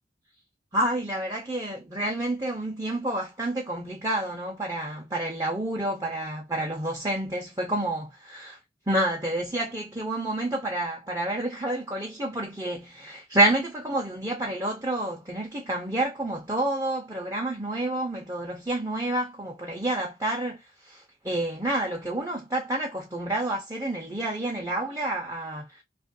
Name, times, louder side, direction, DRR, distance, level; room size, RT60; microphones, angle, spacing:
voice 1, 0.7-8.6 8.9-20.6 20.9-25.8, right 1 dB, 20° right, 0.6 m, -29 dB
2.9 x 2.4 x 2.5 m
head